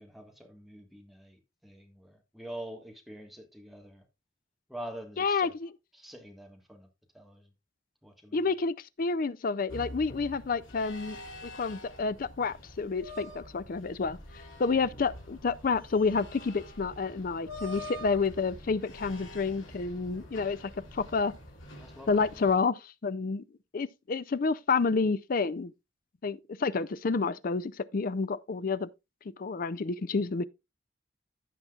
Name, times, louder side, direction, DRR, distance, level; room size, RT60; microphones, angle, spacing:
voice 1, 0.0-4.0 4.7-5.5 5.9-6.9 7.1-7.5 8.0-8.4 21.8-22.4, right 1 dB, ahead, 1.5 m, -45 dB
voice 2, 5.2-5.7 8.3-11.2 11.4-14.2 14.6-21.3 22.1-23.4 23.7-25.7 26.2-28.9 29.4-30.4, left 4 dB, 45° left, 0.4 m, -29 dB
sound 1, 9.7-22.5, left 1 dB, 90° left, 3.2 m, -46 dB
15.5 x 5.9 x 2.4 m
head